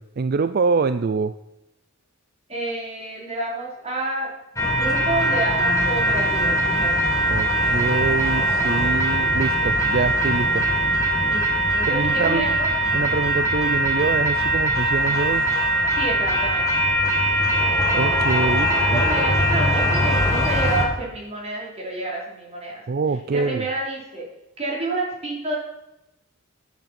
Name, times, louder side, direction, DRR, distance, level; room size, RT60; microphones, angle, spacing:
voice 1, 0.0-1.3 7.3-10.7 11.8-12.6 12.9-15.5 17.9-19.0 22.9-23.6, right 4 dB, 50° right, 12 dB, 0.4 m, -25 dB
voice 2, 2.5-4.3 4.8-7.0 11.2-12.7 15.9-16.9 18.9-22.8 23.3-24.3 24.6-25.5, right 2 dB, 30° right, -3 dB, 4.4 m, -29 dB
sound 1, 4.6-20.9, right 1 dB, 15° left, 2.1 m, -21 dB
12.0 x 9.5 x 5.9 m, 0.91 s
head